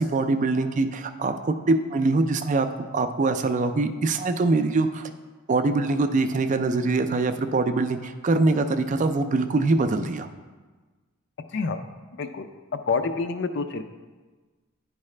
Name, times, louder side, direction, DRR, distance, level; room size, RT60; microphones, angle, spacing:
voice 1, 0.0-5.1 5.5-10.3, right 3 dB, 35° right, 8 dB, 0.3 m, -23 dB
voice 2, 12.9-13.8, left 4 dB, 55° left, 9 dB, 0.4 m, -27 dB
9.7 x 4.8 x 3.2 m, 1.3 s
head